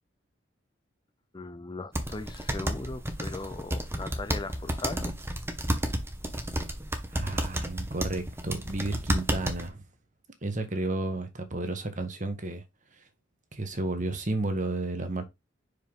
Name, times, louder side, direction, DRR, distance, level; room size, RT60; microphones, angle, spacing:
voice 1, 1.3-5.1, left 3 dB, 25° left, 0.5 m, -39 dB
sound 1, 1.9-9.7, right 1 dB, 15° right, 1.0 m, -31 dB
voice 2, 7.1-9.8 10.4-12.6 13.5-15.2, right 2 dB, 40° right, 1.3 m, -32 dB
5.6 x 5.0 x 3.7 m
head